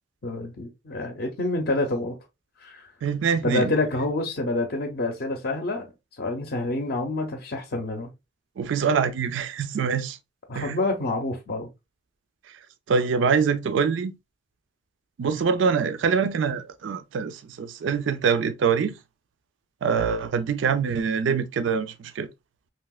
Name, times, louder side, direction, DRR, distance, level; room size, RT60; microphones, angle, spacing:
voice 1, 0.2-2.1 2.6-2.9 3.4-8.1 10.5-11.7, left 2 dB, 55° left, 0.6 m, -28 dB
voice 2, 3.0-3.7 8.6-10.2 10.5-10.8 12.9-14.1 15.2-18.9 19.8-22.3, right 6 dB, 85° right, 0.4 m, -24 dB
3.2 x 2.7 x 2.3 m
head